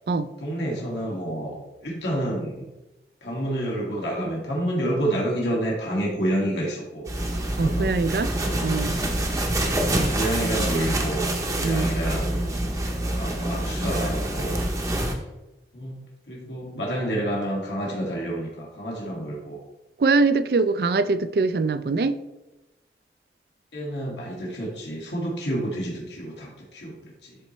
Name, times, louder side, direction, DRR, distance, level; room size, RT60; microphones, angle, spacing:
voice 1, 0.4-2.7 3.2-7.1 7.6-8.0 8.4-9.1 9.8-11.3 11.6-14.6 14.9-15.2 15.7-19.6 23.7-27.4, right 1 dB, 85° left, -3 dB, 1.9 m, -29 dB
sound 1, 7.1-15.1, right 1 dB, 20° right, 0.7 m, -26 dB
voice 2, 7.6-8.3 8.6-9.0 11.6-11.9 20.0-22.2, right 3 dB, 60° right, 14 dB, 0.4 m, -23 dB
12.0 x 4.1 x 3.2 m, 1.0 s
head